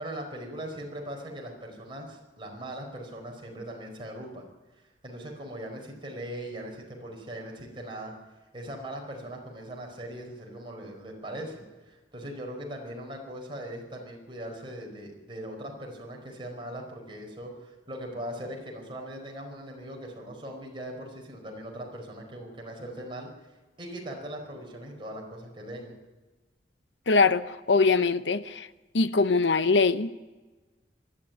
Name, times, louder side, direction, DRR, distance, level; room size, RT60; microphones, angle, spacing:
voice 1, 0.0-4.5 5.0-8.1 8.5-23.3 23.8-26.0, right 1 dB, 30° right, 4.9 m, -40 dB
voice 2, 27.1-28.7 28.9-30.1, left 4 dB, 80° left, 0.8 m, -22 dB
20.0 x 13.5 x 9.4 m
head